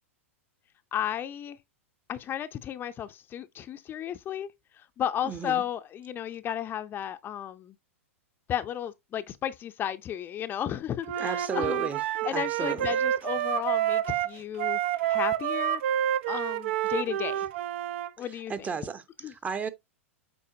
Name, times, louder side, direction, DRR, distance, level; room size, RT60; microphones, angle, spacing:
voice 1, 0.9-1.6 2.1-7.7 8.5-11.9 12.2-14.8 15.1-15.8 16.3-17.4 18.2-18.5 19.2-19.3, left 10 dB, 30° left, 0.5 m, -33 dB
voice 2, 5.2-5.6 11.2-12.0 12.3-13.0 18.2-19.7, right 5 dB, 20° right, 0.8 m, -34 dB
Wind instrument woodwind instrument, 11.0-18.1, right 11 dB, 60° right, 0.5 m, -28 dB
8.5 x 4.1 x 2.7 m
hypercardioid pair, 100°, 7 cm